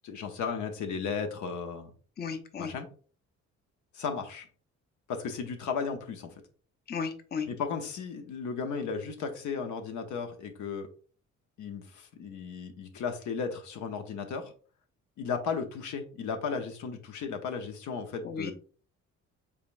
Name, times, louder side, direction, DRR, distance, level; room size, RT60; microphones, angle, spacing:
voice 1, 0.0-1.9 2.6-2.9 3.9-4.5 5.1-6.3 7.5-10.9 11.6-14.5 15.2-18.5, left 5 dB, 75° left, 5 dB, 0.9 m, -35 dB
voice 2, 2.2-2.7 6.9-7.5 18.2-18.5, left 5 dB, 35° left, 6 dB, 0.7 m, -34 dB
5.0 x 3.5 x 2.5 m, 0.40 s
cardioid pair, 90°, 30 cm